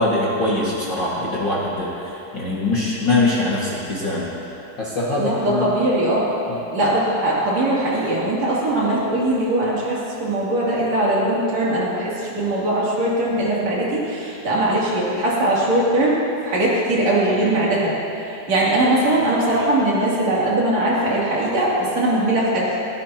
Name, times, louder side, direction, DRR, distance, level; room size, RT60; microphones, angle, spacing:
voice 1, 0.0-4.3 4.8-5.7 6.5-6.6, left 2 dB, 50° left, -7 dB, 1.3 m, -22 dB
voice 2, 5.2-6.3 6.7-17.9 18.5-22.8, right 1 dB, 40° right, -7 dB, 3.6 m, -20 dB
24.5 x 16.0 x 3.0 m, 2.9 s
omnidirectional pair, 5.3 m